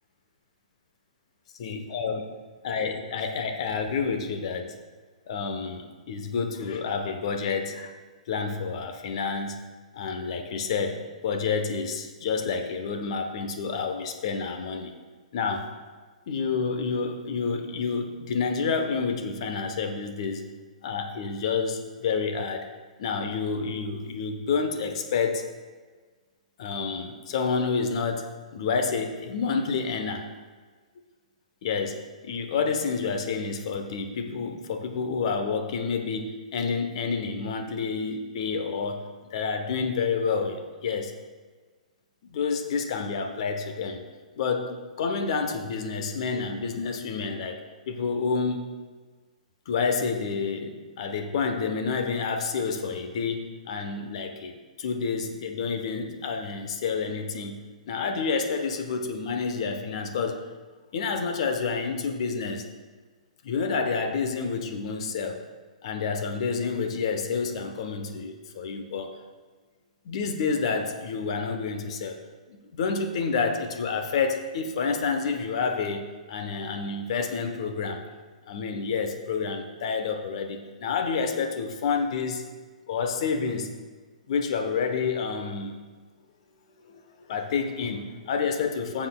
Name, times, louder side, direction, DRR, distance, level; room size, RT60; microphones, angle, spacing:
voice 1, 1.6-2.3 2.6-4.7 5.3-7.9 8.3-9.6 9.9-14.9 15.3-15.7 16.3-20.5 20.8-22.7 23.0-25.5 26.6-30.3 31.6-41.2 42.3-44.0 44.4-47.6 47.9-48.7 49.7-57.6 57.9-60.4 60.9-62.7 63.4-65.4 65.8-69.2 70.0-72.2 72.5-78.0 78.5-82.4 82.9-83.8 84.3-85.8 86.8-87.0 87.3-89.1, left 5 dB, 50° left, 6 dB, 1.0 m, -29 dB
16.5 x 7.4 x 2.3 m, 1.4 s
figure-of-eight pair, 120°, 4 cm